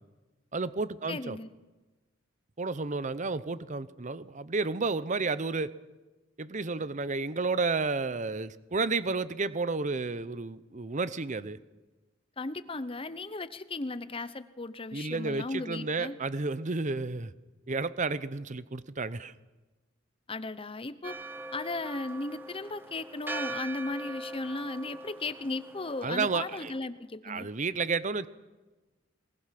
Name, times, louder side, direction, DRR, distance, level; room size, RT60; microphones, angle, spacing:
voice 1, 0.5-1.4 2.6-5.7 6.4-11.6 14.9-17.3 17.7-19.3 26.0-26.9 27.2-28.3, right 3 dB, 40° right, 15 dB, 0.8 m, -31 dB
voice 2, 1.1-1.5 12.4-16.1 20.3-21.2 21.5-27.5, left 2 dB, 25° left, 13 dB, 0.9 m, -36 dB
Church bell, 21.0-26.8, right 2 dB, 10° right, 1.3 m, -41 dB
22.5 x 20.5 x 5.9 m, 1.2 s
head